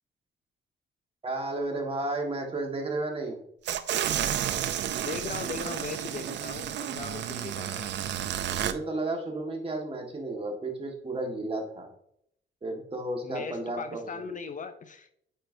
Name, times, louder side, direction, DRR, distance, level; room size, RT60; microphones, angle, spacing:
voice 1, 1.2-3.4 8.6-11.9 12.6-14.1, right 2 dB, 30° right, 2 dB, 1.7 m, -33 dB
sound 1, 3.7-8.7, right 10 dB, 65° right, 0.5 m, -31 dB
voice 2, 5.0-7.9 13.2-15.1, left 6 dB, 40° left, 9 dB, 0.5 m, -38 dB
8.7 x 4.5 x 2.7 m, 0.70 s
cardioid pair, 90°, 20 cm